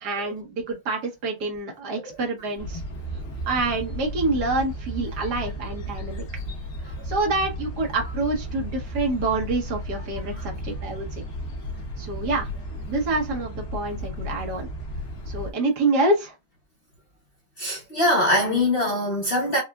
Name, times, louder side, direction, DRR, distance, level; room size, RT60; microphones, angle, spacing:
voice 1, 0.0-2.8 3.5-6.2 7.1-11.2 12.0-12.5 12.9-14.7 15.3-16.3, right 2 dB, 70° right, 1.6 m, -27 dB
voice 2, 1.9-2.2 2.7-2.8 6.9-7.0 8.0-8.1 10.0-10.5 12.2-12.3 17.6-19.6, left 1 dB, 45° left, 0.9 m, -24 dB
sound 1, 2.6-15.5, equal, 75° left, 1.7 m, -34 dB
4.9 x 2.2 x 2.3 m
omnidirectional pair, 1.8 m